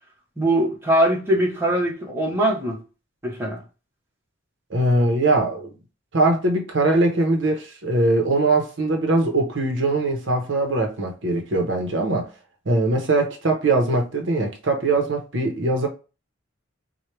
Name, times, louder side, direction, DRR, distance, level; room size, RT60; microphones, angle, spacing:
voice 1, 0.4-2.8 3.2-3.6, right 1 dB, 10° right, 1.1 m, -21 dB
voice 2, 4.7-5.7 6.1-12.3 12.7-15.9, right 2 dB, 70° right, 0.8 m, -21 dB
4.4 x 2.3 x 3.2 m
head